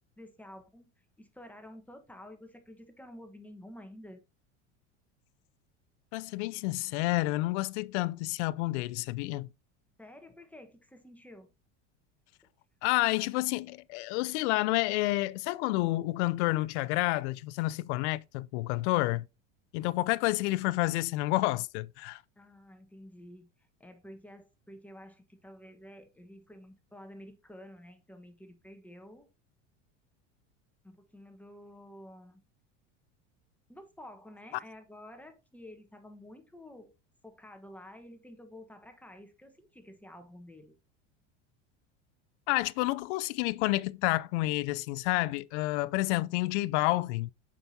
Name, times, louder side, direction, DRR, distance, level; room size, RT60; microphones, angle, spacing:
voice 1, 0.0-4.2 10.0-11.5 22.4-29.3 30.8-32.4 33.7-36.9 37.2-40.7, left 1 dB, 5° left, 1.2 m, -50 dB
voice 2, 6.1-9.5 12.8-19.3 19.7-22.2 42.5-47.3, left 19 dB, 70° left, 0.5 m, -29 dB
7.8 x 6.0 x 2.8 m
supercardioid pair, 105°, 36 cm